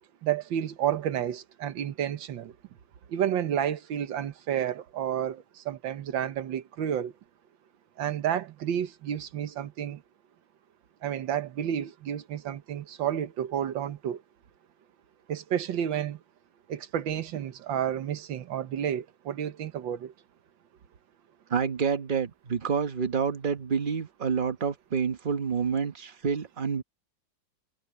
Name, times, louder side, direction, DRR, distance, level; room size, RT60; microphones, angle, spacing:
voice 1, 0.2-2.5 3.1-7.1 8.0-10.0 11.0-14.2 15.3-16.2 16.7-20.1, right 9 dB, 75° right, 1.8 m, -31 dB
voice 2, 21.5-26.8, right 6 dB, 30° right, 1.1 m, -28 dB
omnidirectional pair, 2.1 m